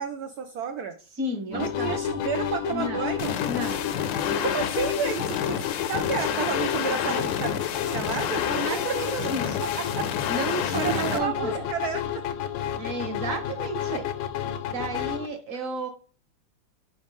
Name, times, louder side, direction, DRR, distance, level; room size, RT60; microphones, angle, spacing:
voice 1, 0.0-1.0 1.5-3.4 4.4-7.5 7.9-9.0 9.6-10.1 10.7-12.3, right 7 dB, 80° right, 6 dB, 0.8 m, -31 dB
voice 2, 1.1-2.0 2.7-3.0 3.5-3.9 4.2-4.4 7.0-7.2 8.4-9.7 10.3-11.6 12.8-14.1 14.7-15.9, right 2 dB, 45° right, 5 dB, 1.3 m, -32 dB
sound 1, 1.5-15.3, left 10 dB, 90° left, 1.6 m, -31 dB
sound 2, 3.2-11.2, left 8 dB, 70° left, 1.2 m, -30 dB
5.1 x 3.5 x 5.2 m, 0.37 s
omnidirectional pair, 2.3 m